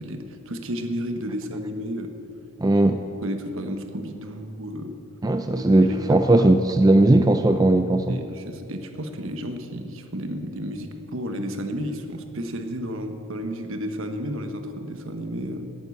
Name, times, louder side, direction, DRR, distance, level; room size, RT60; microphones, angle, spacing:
voice 1, 0.0-2.1 3.2-5.0 5.6-6.5 8.1-15.6, equal, 65° right, 6 dB, 1.2 m, -32 dB
voice 2, 2.6-3.0 5.2-8.1, right 2 dB, 15° right, 7 dB, 0.4 m, -18 dB
11.5 x 9.7 x 8.4 m, 2.7 s
head